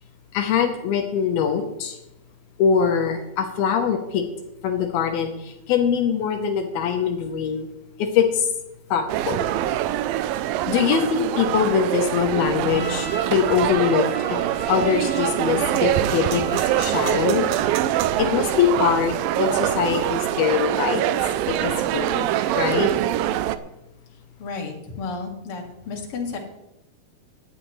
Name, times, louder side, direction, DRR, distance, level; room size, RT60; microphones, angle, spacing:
voice 1, 0.3-2.0 2.6-4.2 4.6-7.7 8.0-8.5 8.9-9.5 10.7-14.4 14.7-17.5 18.2-21.0 21.5-22.3 22.5-22.9, left 7 dB, 80° left, 4 dB, 2.9 m, -23 dB
sound 1, 9.1-23.6, right 12 dB, 80° right, 2.2 m, -24 dB
Trumpet, 12.6-17.4, right 3 dB, 40° right, 1.2 m, -37 dB
voice 2, 24.4-26.4, left 4 dB, 40° left, 0 dB, 2.6 m, -32 dB
18.0 x 11.5 x 3.2 m, 0.91 s
omnidirectional pair, 4.4 m